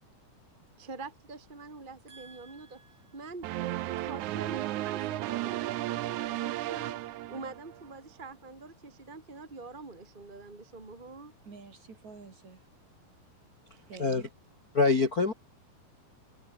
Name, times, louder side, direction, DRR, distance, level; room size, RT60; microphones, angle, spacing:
voice 1, 0.8-2.8 3.1-3.5 3.8-11.3, right 3 dB, 20° right, 1.3 m, -45 dB
voice 2, 2.1-3.0 11.4-12.6 13.9-14.3, right 4 dB, 45° right, 6.2 m, -50 dB
sound 1, 3.4-7.9, right 15 dB, 80° right, 1.7 m, -34 dB
voice 3, 14.7-15.3, left 3 dB, 30° left, 1.9 m, -24 dB
omnidirectional pair, 4.6 m